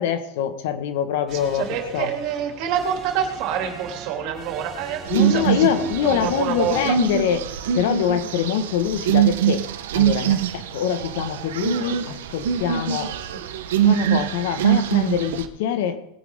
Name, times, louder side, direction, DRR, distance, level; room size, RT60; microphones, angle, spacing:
voice 1, 0.0-1.7 1.9-2.1 5.1-7.5 7.7-9.6 9.9-13.1 13.8-16.0, left 9 dB, 70° left, 9 dB, 1.6 m, -24 dB
sound 1, 1.3-6.9, right 9 dB, 30° right, 1.0 m, -40 dB
voice 2, 1.5-6.8 13.3-13.4, right 8 dB, 55° right, 3 dB, 2.8 m, -27 dB
sound 2, 5.1-15.5, right 10 dB, 85° right, 1.1 m, -23 dB
20.0 x 9.6 x 3.7 m, 0.82 s
supercardioid pair, 140°, 0 cm